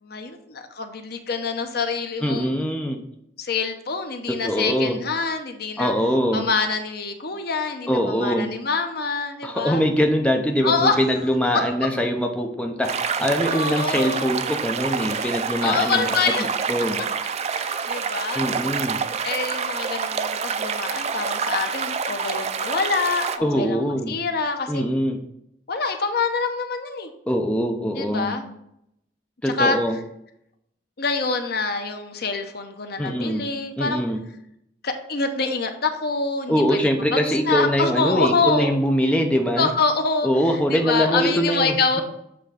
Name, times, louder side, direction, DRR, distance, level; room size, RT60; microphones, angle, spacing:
voice 1, 0.0-2.6 3.4-5.9 6.3-9.8 10.6-11.0 13.5-14.3 15.6-16.4 17.5-18.5 19.2-23.8 24.1-24.8 25.7-27.1 27.9-28.5 29.4-29.8 31.0-34.0 34.8-38.7 39.6-40.3 40.7-42.0, left 4 dB, 60° left, 6 dB, 0.8 m, -25 dB
voice 2, 2.2-3.0 4.3-5.0 5.8-6.5 7.9-8.5 9.4-16.0 16.4-17.0 18.4-19.0 23.4-24.2 24.7-25.2 27.3-28.4 29.4-30.0 33.0-33.4 33.8-34.2 36.5-39.7 40.2-42.0, equal, 5° left, 3 dB, 0.7 m, -23 dB
sound 1, 12.8-23.4, right 6 dB, 35° right, 0.4 m, -27 dB
7.9 x 3.6 x 5.0 m, 0.77 s
head